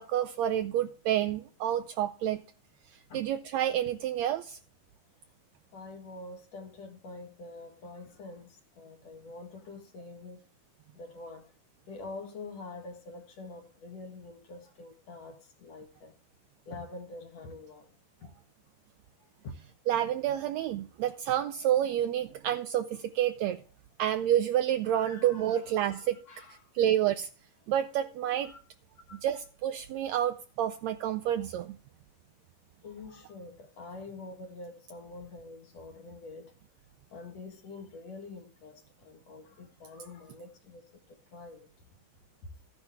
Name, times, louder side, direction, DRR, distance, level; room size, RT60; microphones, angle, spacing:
voice 1, 0.0-2.4 2.9-4.6 19.9-23.6 24.0-26.2 26.7-27.3 27.7-28.5 29.2-31.8, right 11 dB, 80° right, 1.6 m, -29 dB
voice 2, 5.7-10.4 10.9-11.5 11.9-16.2 16.7-17.9 18.2-18.3 19.4-19.6 24.9-26.6 28.4-28.6 29.1-29.2 32.8-36.5 37.1-41.7, left 3 dB, 55° left, 2.5 m, -46 dB
14.5 x 10.5 x 3.6 m
omnidirectional pair, 3.8 m